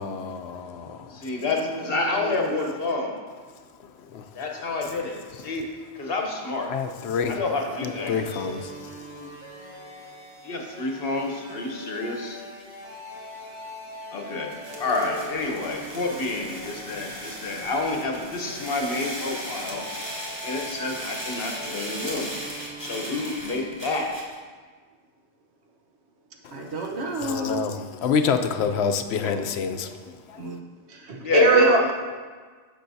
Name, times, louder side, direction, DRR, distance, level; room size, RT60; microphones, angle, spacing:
voice 1, 0.0-1.2 3.8-4.3 6.7-7.4 7.8-9.4 26.6-26.7 27.2-30.6, left 6 dB, 85° left, 0.8 m, -28 dB
voice 2, 1.1-3.2 4.3-5.7 5.9-6.7 7.3-8.4 10.4-12.4 14.1-19.8 20.4-22.3 22.8-24.1 29.2-29.4 31.2-31.9, left 3 dB, 65° left, 1.2 m, -29 dB
voice 3, 1.6-2.8 26.5-27.6 30.4-30.6 30.9-31.9, right 2 dB, 90° right, 1.2 m, -24 dB
sound 1, 7.7-24.1, equal, 15° left, 1.8 m, -42 dB
sound 2, 14.5-24.3, right 1 dB, 25° right, 1.4 m, -37 dB
10.0 x 6.8 x 2.7 m
omnidirectional pair, 1.1 m